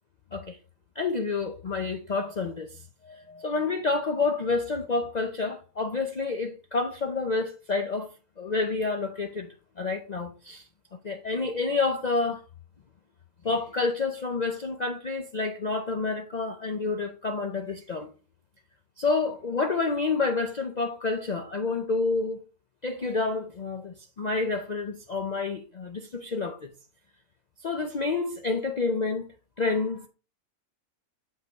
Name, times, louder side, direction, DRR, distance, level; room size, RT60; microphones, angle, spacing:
voice 1, 1.0-2.7 3.0-8.1 8.4-9.5 9.8-10.6 11.0-12.4 13.4-18.1 19.0-22.4 22.8-26.7 27.6-29.3 29.6-30.1, left 3 dB, 80° left, 0.3 m, -29 dB
7.6 x 5.3 x 3.0 m
omnidirectional pair, 1.6 m